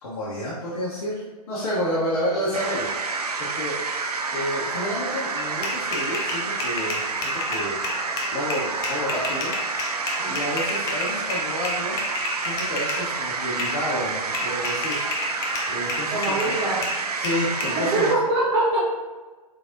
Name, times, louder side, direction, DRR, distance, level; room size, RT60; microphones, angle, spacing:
voice 1, 0.0-3.8 4.3-7.8 8.3-9.5 10.3-12.0 12.4-15.1 15.7-16.5 17.1-18.1, equal, 50° left, -7 dB, 1.0 m, -30 dB
sound 1, 2.5-18.2, right 4 dB, 75° right, 0.4 m, -29 dB
sound 2, 5.4-13.1 13.6-13.8 14.3-17.7, left 3 dB, 20° left, 0.4 m, -31 dB
voice 2, 16.1-16.8 17.8-18.9, right 2 dB, 40° right, -6 dB, 0.8 m, -23 dB
3.9 x 3.4 x 2.5 m, 1.3 s
figure-of-eight pair, 115°, 20 cm